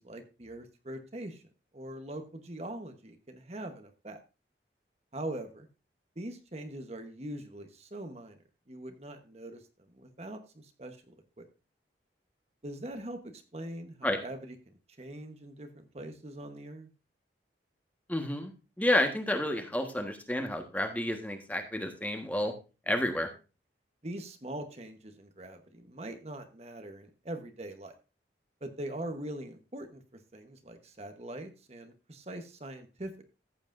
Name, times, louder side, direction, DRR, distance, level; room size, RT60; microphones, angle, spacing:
voice 1, 0.0-1.4 1.7-4.2 5.1-5.7 6.2-8.4 8.7-9.6 10.0-11.5 12.6-14.6 15.0-16.9 24.0-27.9 28.6-33.2, right 1 dB, 35° right, 6 dB, 1.1 m, -42 dB
voice 2, 18.1-18.5 18.8-22.5 22.9-23.3, left 1 dB, 10° left, 5 dB, 1.3 m, -30 dB
14.5 x 8.1 x 2.6 m, 0.31 s
head